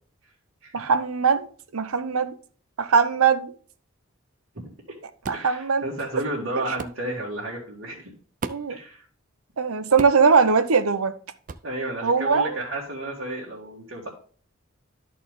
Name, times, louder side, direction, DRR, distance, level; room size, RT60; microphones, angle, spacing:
voice 1, 0.7-1.5 1.7-2.3 2.8-3.5 5.3-5.9 8.4-8.8 9.6-11.1 12.0-12.5, right 5 dB, 90° right, 0.7 m, -21 dB
sound 1, 5.2-5.5 6.8-7.0 8.4-8.8 10.0-10.3 11.5-11.7, right 4 dB, 35° right, 0.4 m, -34 dB
voice 2, 5.3-8.1 8.7-9.0 11.6-14.1, right 1 dB, 60° right, 1.9 m, -32 dB
12.5 x 4.4 x 3.6 m
head